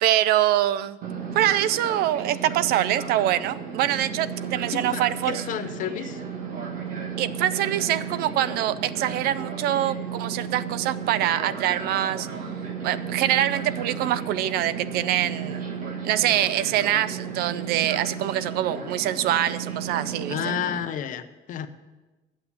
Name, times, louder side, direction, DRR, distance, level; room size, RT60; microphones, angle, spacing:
voice 1, 0.0-1.0 1.3-5.4 7.2-12.3 12.8-15.6 16.0-20.5, right 12 dB, 80° right, 16 dB, 0.5 m, -24 dB
Fixed-wing aircraft airplane, 1.0-20.8, right 6 dB, 60° right, 1.8 m, -34 dB
voice 2, 4.7-6.2 20.3-21.7, left 9 dB, 55° left, 10 dB, 0.7 m, -31 dB
8.9 x 7.2 x 8.3 m, 1.1 s
cardioid pair, 155°, 16 cm